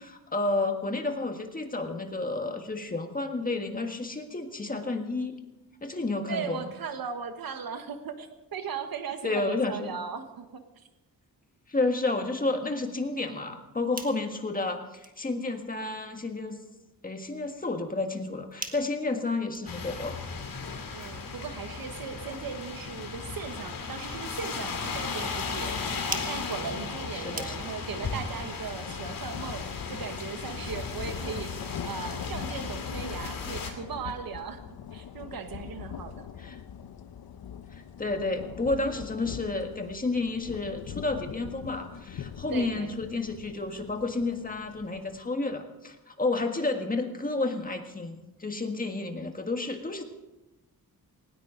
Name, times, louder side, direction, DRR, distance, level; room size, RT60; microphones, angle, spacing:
voice 1, 0.0-5.3 5.8-6.7 9.2-10.0 11.7-16.6 17.0-20.2 27.1-27.6 36.4-36.6 37.7-50.0, left 3 dB, 25° left, 4 dB, 1.7 m, -31 dB
voice 2, 6.3-10.9 20.9-25.8 26.1-31.5 31.8-36.3 42.5-42.9, right 6 dB, 75° right, 7 dB, 1.4 m, -38 dB
sound 1, 13.6-28.0, right 3 dB, 25° right, 1.5 m, -47 dB
sound 2, 19.7-33.7, left 4 dB, 70° left, 2.7 m, -36 dB
sound 3, 28.3-45.2, left 8 dB, 90° left, 0.9 m, -42 dB
19.0 x 18.5 x 3.9 m, 1.0 s
wide cardioid pair, 150°, 36 cm